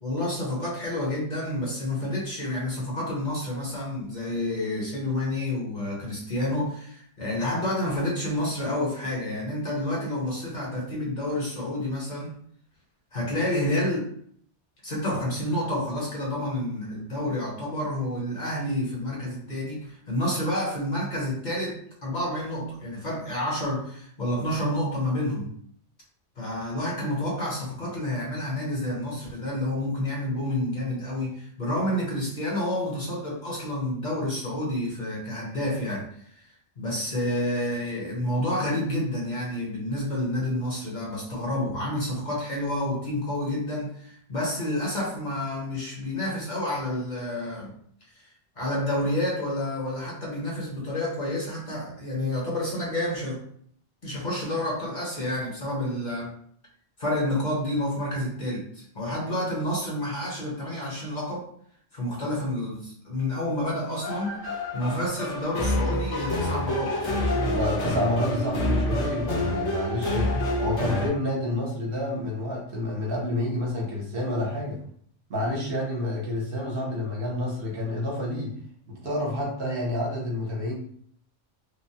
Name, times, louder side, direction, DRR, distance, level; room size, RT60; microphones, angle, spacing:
voice 1, 0.0-12.4 13.1-14.1 14.8-25.5 26.4-47.7 48.1-48.3 48.6-53.4 54.0-56.3 57.0-61.5 61.9-64.4 64.7-67.1, left 1 dB, 45° left, -4 dB, 0.9 m, -29 dB
sound 1, 63.9-71.1, left 1 dB, 85° left, 1.0 m, -27 dB
voice 2, 67.4-74.8 75.3-78.5 78.9-80.7, left 1 dB, 55° right, -3 dB, 0.9 m, -29 dB
3.1 x 2.0 x 2.7 m, 0.63 s
omnidirectional pair, 1.2 m